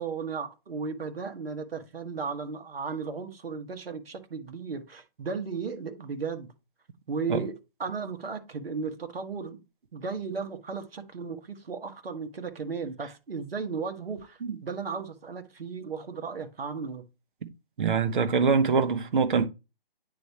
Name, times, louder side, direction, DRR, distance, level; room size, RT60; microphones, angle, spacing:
voice 1, 0.0-6.5 7.1-7.5 7.8-9.6 9.9-17.0, right 5 dB, 80° right, 1.5 m, -35 dB
voice 2, 17.8-19.5, right 5 dB, 60° right, 1.1 m, -24 dB
9.2 x 4.7 x 2.9 m
hypercardioid pair, 155°, 29 cm